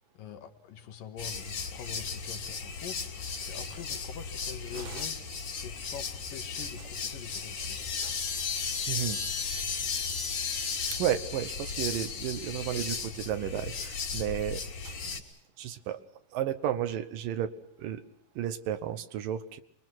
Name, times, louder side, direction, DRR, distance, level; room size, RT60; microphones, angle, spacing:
voice 1, 0.0-5.2 5.6-7.8, left 8 dB, 80° left, 6 dB, 3.4 m, -45 dB
sound 1, 1.2-15.2, left 5 dB, 65° left, 4.2 m, -35 dB
voice 2, 4.7-5.0 8.0-8.1 8.9-9.2 10.9-15.2 15.6-16.0 16.3-17.5 17.8-18.0 18.4-19.6, right 11 dB, 85° right, 10 dB, 2.8 m, -33 dB
27.0 x 22.5 x 6.1 m, 0.75 s
omnidirectional pair, 3.8 m